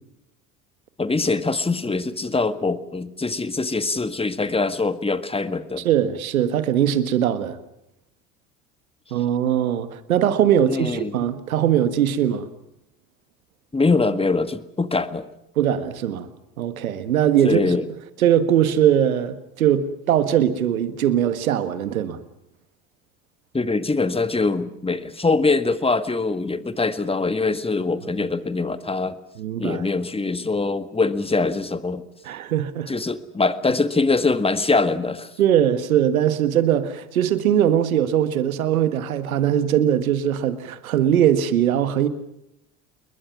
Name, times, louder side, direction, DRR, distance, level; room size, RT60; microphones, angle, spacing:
voice 1, 1.0-5.8 10.6-11.1 13.7-15.3 17.4-17.8 23.5-29.2 29.6-32.0 32.9-35.3, left 3 dB, 15° left, 12 dB, 1.8 m, -23 dB
voice 2, 5.8-7.6 9.1-12.5 15.6-16.3 16.6-17.8 18.2-22.2 29.4-29.9 32.2-32.9 35.4-42.1, right 10 dB, 85° right, 12 dB, 1.7 m, -21 dB
28.5 x 22.0 x 6.1 m, 0.83 s
hypercardioid pair, 65°, 41 cm